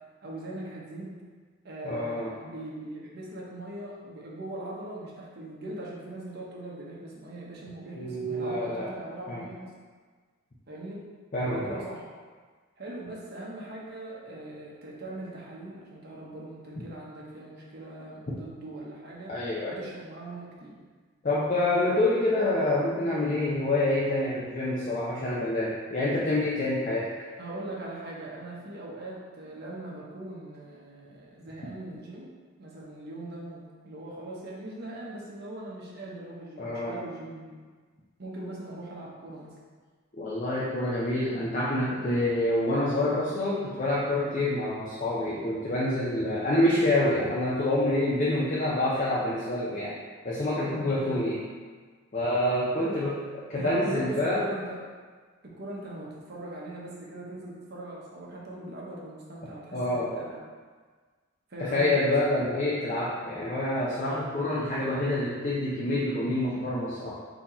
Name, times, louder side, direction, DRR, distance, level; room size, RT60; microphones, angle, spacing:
voice 1, 0.2-1.2 1.6-9.7 10.7-11.0 11.4-12.0 12.8-19.3 19.7-20.8 27.4-32.3 32.6-37.6 38.2-39.5 51.0-51.2 52.8-53.0 53.5-54.8 55.4-60.4 61.5-62.1, right 1 dB, 50° right, -4 dB, 0.9 m, -40 dB
voice 2, 1.8-2.3 7.9-8.9 9.3-9.5 11.3-11.8 19.3-19.9 21.2-27.1 36.6-37.0 40.2-49.9 50.2-51.4 52.1-53.2 53.5-54.5 59.7-60.3 61.6-67.2, left 1 dB, 35° left, -7 dB, 0.5 m, -27 dB
4.2 x 2.9 x 4.2 m, 1.5 s
head